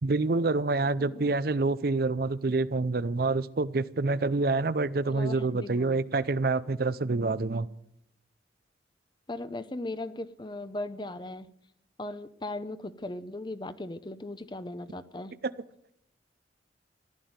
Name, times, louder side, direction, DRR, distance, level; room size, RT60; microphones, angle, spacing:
voice 1, 0.0-7.7, right 3 dB, 55° right, 15 dB, 0.6 m, -27 dB
voice 2, 1.0-1.3 5.1-6.0 9.3-11.5 12.0-15.3, left 2 dB, 25° left, 13 dB, 0.7 m, -38 dB
15.5 x 11.5 x 7.9 m, 0.78 s
head